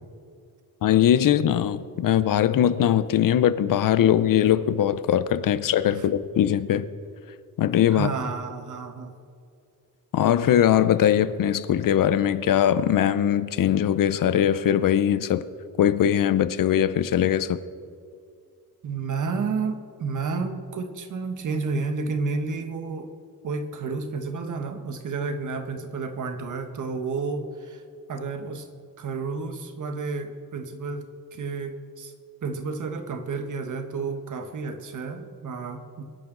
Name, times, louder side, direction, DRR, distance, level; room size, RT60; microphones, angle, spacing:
voice 1, 0.8-6.8 7.6-8.1 10.1-15.4 15.8-17.6, left 10 dB, 65° left, 0.7 m, -21 dB
voice 2, 7.9-9.1 18.8-23.1 23.4-27.8 28.1-28.7 29.0-32.1 32.4-36.0, right 4 dB, 55° right, 1.4 m, -31 dB
23.0 x 10.5 x 3.9 m
wide cardioid pair, 150°, 35 cm